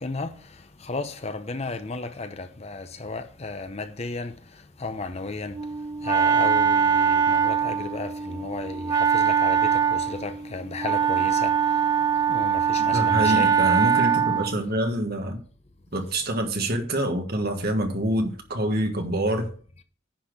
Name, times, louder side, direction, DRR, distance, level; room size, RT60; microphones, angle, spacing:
voice 1, 0.0-0.3 0.8-4.3 4.8-5.6 6.0-11.5 12.3-13.5, left 3 dB, 30° left, 0.6 m, -33 dB
Wind instrument woodwind instrument, 5.5-14.6, right 7 dB, 20° right, 0.4 m, -22 dB
voice 2, 12.9-15.4 15.9-19.5, right 1 dB, 45° right, 1.5 m, -26 dB
10.0 x 4.2 x 6.4 m
head